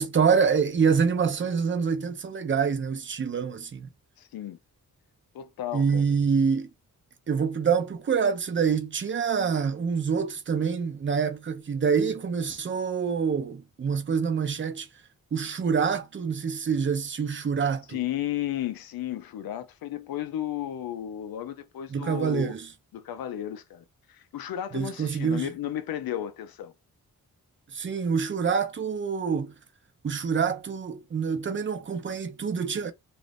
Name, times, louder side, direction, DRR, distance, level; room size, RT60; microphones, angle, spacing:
voice 1, 0.0-3.9 5.7-6.7 7.3-14.9 15.3-18.0 21.9-22.7 24.7-25.5 27.7-29.6 30.0-32.9, right 6 dB, 35° right, 0.6 m, -26 dB
voice 2, 4.2-4.6 5.3-6.1 17.9-22.5 22.9-26.7, left 11 dB, 85° left, 0.5 m, -34 dB
2.5 x 2.5 x 3.3 m
wide cardioid pair, 110°, 35 cm